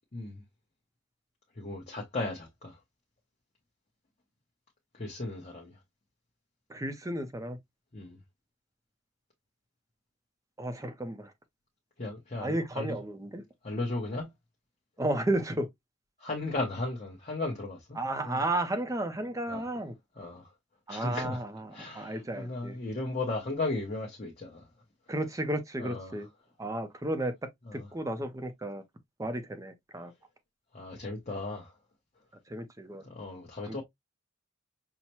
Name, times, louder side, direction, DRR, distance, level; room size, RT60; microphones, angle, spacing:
voice 1, 1.6-2.8 4.9-5.7 7.9-8.2 12.0-12.9 13.6-14.3 16.2-18.0 18.2-18.4 19.5-19.6 20.2-20.5 20.9-21.4 21.7-24.6 25.8-26.2 27.7-27.9 30.7-31.7 33.0-33.8, left 2 dB, 35° left, 0.8 m, -35 dB
voice 2, 6.7-7.6 10.6-11.3 12.4-13.4 15.0-15.7 18.0-19.9 20.9-22.8 25.1-26.3 26.6-27.3 27.7-28.8 29.2-30.1 32.5-33.0 33.7-33.8, right 1 dB, 15° right, 0.5 m, -33 dB
5.6 x 2.1 x 3.0 m
head